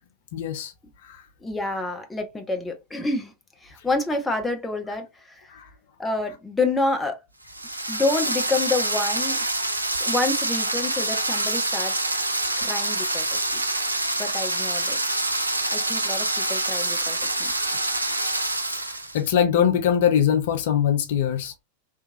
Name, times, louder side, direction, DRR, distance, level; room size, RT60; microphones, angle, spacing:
voice 1, 0.3-0.7 1.1-1.2 5.5-5.7 16.8-17.1 17.5-17.7 18.2-18.3 18.8-21.5, left 9 dB, 55° left, 0.5 m, -23 dB
voice 2, 1.4-3.3 3.6-5.5 6.0-7.2 7.9-9.4 10.0-12.2 12.6-13.6 14.2-15.0 15.7-17.5, left 2 dB, 10° left, 0.6 m, -28 dB
sound 1, 7.5-19.2, right 2 dB, 85° right, 0.4 m, -26 dB
2.9 x 2.3 x 2.5 m
figure-of-eight pair, 90°, 0 cm